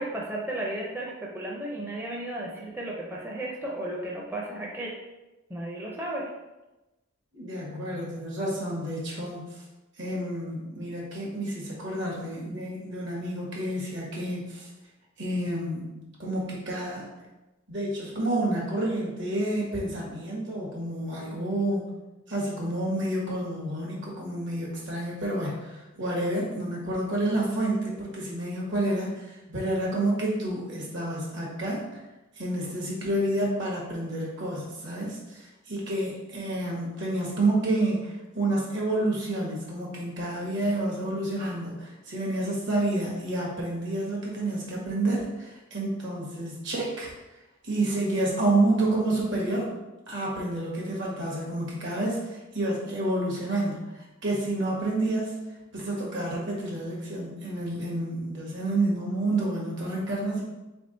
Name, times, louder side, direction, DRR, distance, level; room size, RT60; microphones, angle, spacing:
voice 1, 0.0-4.9 5.5-6.3, right 1 dB, 10° right, -3 dB, 0.5 m, -34 dB
voice 2, 7.3-9.4 10.0-14.7 15.2-17.1 17.7-21.9 22.3-32.0 32.3-47.1 47.6-49.7 50.1-55.4 55.7-60.4, right 1 dB, 65° right, -3 dB, 1.4 m, -29 dB
3.6 x 3.4 x 3.9 m, 1.0 s
head